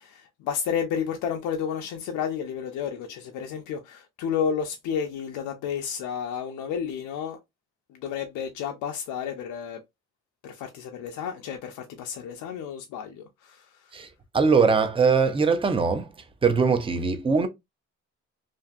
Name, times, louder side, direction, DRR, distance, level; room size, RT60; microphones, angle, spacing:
voice 1, 0.0-7.4 7.9-9.8 10.4-13.8, left 7 dB, 90° left, 0.5 m, -31 dB
voice 2, 14.3-16.1 16.4-17.5, right 5 dB, 20° right, 0.5 m, -21 dB
2.5 x 2.5 x 2.3 m
cardioid pair, 90°, 30 cm